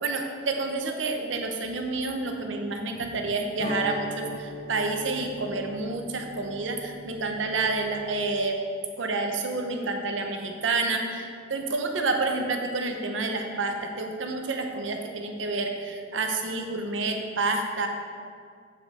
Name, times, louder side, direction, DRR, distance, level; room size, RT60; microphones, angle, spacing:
voice 1, 0.0-8.6 9.0-17.9, right 3 dB, 80° right, 4 dB, 0.8 m, -29 dB
sound 1, 3.6-8.4, equal, 35° left, 0.6 m, -39 dB
8.4 x 5.1 x 4.2 m, 2.2 s
head